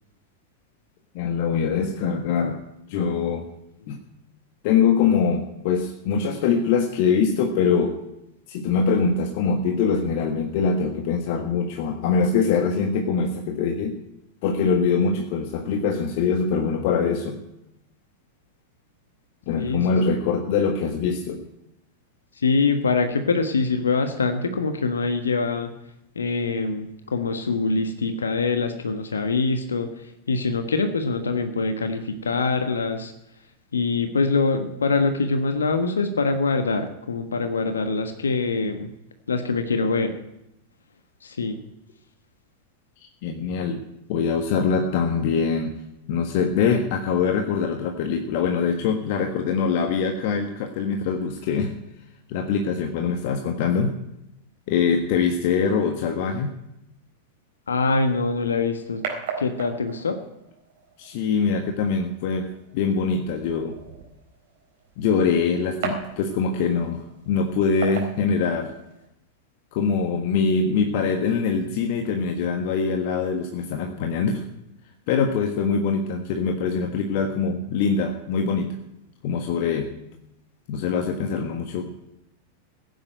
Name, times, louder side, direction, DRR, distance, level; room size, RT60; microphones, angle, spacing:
voice 1, 1.1-2.6 2.9-3.5 3.9-4.0 4.6-8.0 8.5-14.0 14.4-17.4 19.5-21.4 43.2-43.8 44.1-45.8 46.1-51.7 52.3-53.9 54.7-56.5 61.0-63.8 65.0-68.7 69.7-74.4 75.1-78.8 79.2-79.9 80.7-81.9, left 5 dB, 50° left, 4 dB, 1.5 m, -23 dB
voice 2, 19.6-19.9 22.4-25.7 26.1-33.1 33.7-38.9 39.3-40.1 41.2-41.6 57.7-59.0 59.4-60.2, left 4 dB, 70° left, 7 dB, 1.4 m, -24 dB
sound 1, 58.1-69.1, right 6 dB, 55° right, 4.2 m, -38 dB
16.5 x 9.5 x 9.2 m, 0.84 s
figure-of-eight pair, 90°, 0 cm